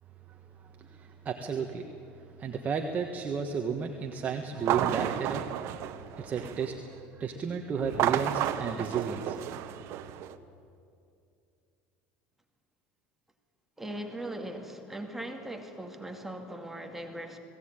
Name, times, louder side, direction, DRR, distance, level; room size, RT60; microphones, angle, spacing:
voice 1, 0.8-1.9 2.1-9.4, right 6 dB, 30° right, 4 dB, 1.4 m, -33 dB
sound 1, 4.6-6.8 7.8-10.3, right 11 dB, 60° right, 1.1 m, -32 dB
voice 2, 13.8-17.4, right 1 dB, 5° right, 3 dB, 2.1 m, -39 dB
20.5 x 17.0 x 9.0 m, 2.5 s
supercardioid pair, 120°, 5 cm